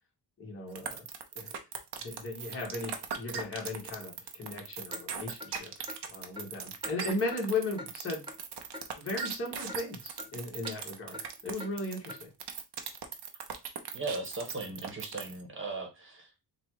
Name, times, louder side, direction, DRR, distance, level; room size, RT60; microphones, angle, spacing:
voice 1, 0.4-1.0 1.3-1.6 2.0-5.7 6.1-8.2 9.0-12.3, left 2 dB, 30° left, -2 dB, 1.6 m, -36 dB
sound 1, 0.7-15.4, right 7 dB, 70° right, 0.8 m, -39 dB
Clock, 4.9-5.0 5.4-5.5 5.9-6.0 6.4-6.5 6.8-7.0 7.3-7.4 7.8-7.9 8.3-8.4 8.7-8.9 9.2-9.3 9.7-9.8 10.2-10.3 10.6-10.8 11.1-11.3 11.6-11.7 12.1-12.2, left 2 dB, 10° right, 0.8 m, -44 dB
voice 2, 13.9-16.4, right 3 dB, 30° right, 2 dB, 1.3 m, -38 dB
3.9 x 2.4 x 4.6 m, 0.26 s
wide cardioid pair, 135°, 41 cm